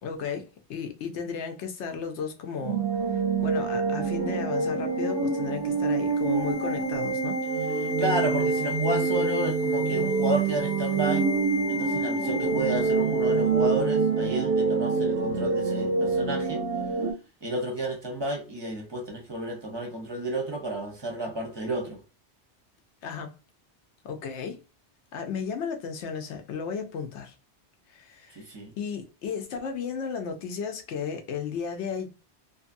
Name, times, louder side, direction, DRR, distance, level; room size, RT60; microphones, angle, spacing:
voice 1, 0.0-0.4 0.7-2.8 3.1-7.4 23.0-23.3 24.0-24.6 25.1-27.3 27.9-28.4 28.8-32.1, left 6 dB, 80° left, 0.9 m, -34 dB
sound 1, 2.6-17.1, right 4 dB, 90° right, 0.9 m, -26 dB
sound 2, 4.5-13.8 14.0-14.2, left 6 dB, 30° left, 0.6 m, -37 dB
voice 2, 8.0-11.3 11.7-16.6 17.4-22.0 28.3-28.7, right 1 dB, 30° right, 0.6 m, -31 dB
2.6 x 2.5 x 2.5 m
omnidirectional pair, 1.2 m